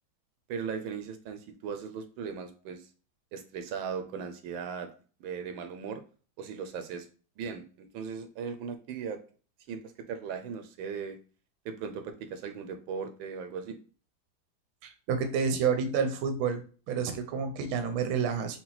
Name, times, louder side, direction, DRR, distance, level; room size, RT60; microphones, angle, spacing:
voice 1, 0.5-2.9 3.3-4.9 5.2-6.0 6.4-7.1 7.4-9.2 9.7-11.2 11.6-13.8, right 6 dB, 80° right, 7 dB, 1.4 m, -38 dB
voice 2, 14.8-16.6 16.9-18.6, right 6 dB, 65° right, 6 dB, 1.0 m, -29 dB
5.8 x 2.1 x 4.0 m, 0.38 s
omnidirectional pair, 2.2 m